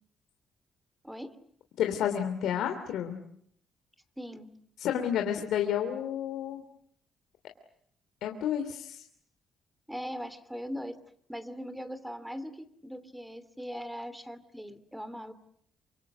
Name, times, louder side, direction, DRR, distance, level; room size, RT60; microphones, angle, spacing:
voice 1, 1.8-3.2 4.8-6.6 8.2-9.0, left 9 dB, 80° left, 4 dB, 2.9 m, -30 dB
voice 2, 4.2-4.5 9.9-11.0 11.3-15.3, equal, 5° right, 13 dB, 2.8 m, -40 dB
28.0 x 25.5 x 8.1 m, 0.67 s
cardioid pair, 90°, 0 cm